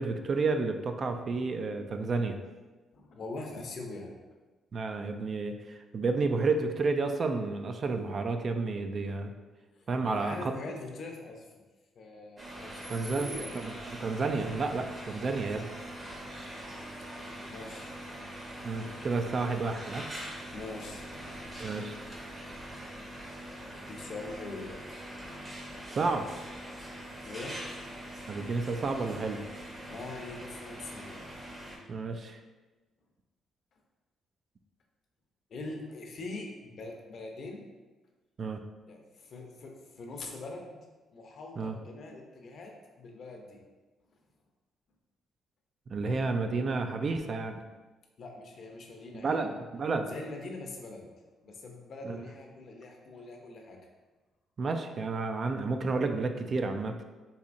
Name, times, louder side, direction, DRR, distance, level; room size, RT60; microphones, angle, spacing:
voice 1, 0.0-2.4 4.7-9.3 9.9-10.4 12.9-15.7 18.6-20.1 21.6-22.0 25.9-26.2 28.3-29.4 31.9-32.4 38.4-38.6 41.6-41.8 45.9-47.6 49.1-50.1 52.0-52.2 54.6-56.9, right 3 dB, 45° right, 6 dB, 0.3 m, -31 dB
voice 2, 2.9-4.1 9.8-11.5 11.9-13.5 17.5-17.9 20.5-21.8 23.8-25.0 26.8-27.6 29.9-31.2 35.5-37.6 38.9-40.8 41.1-43.6 48.2-49.5 50.0-51.1 51.4-53.8, left 2 dB, 60° left, 2 dB, 0.6 m, -43 dB
sound 1, 12.4-31.8, right 1 dB, 25° right, 0.8 m, -43 dB
4.1 x 2.7 x 2.5 m, 1.2 s
cardioid pair, 90°, 0 cm